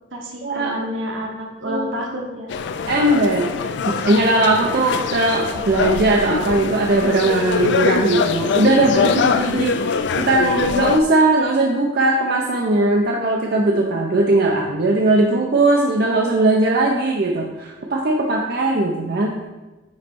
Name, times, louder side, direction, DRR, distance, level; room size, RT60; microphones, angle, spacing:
voice 1, 0.1-2.5, equal, 80° right, 0 dB, 1.4 m, -29 dB
sound 1, 2.5-11.0, left 5 dB, 60° left, 0.3 m, -23 dB
voice 2, 2.9-19.3, right 2 dB, 55° right, 0 dB, 0.6 m, -19 dB
9.3 x 3.2 x 4.5 m, 1.1 s
head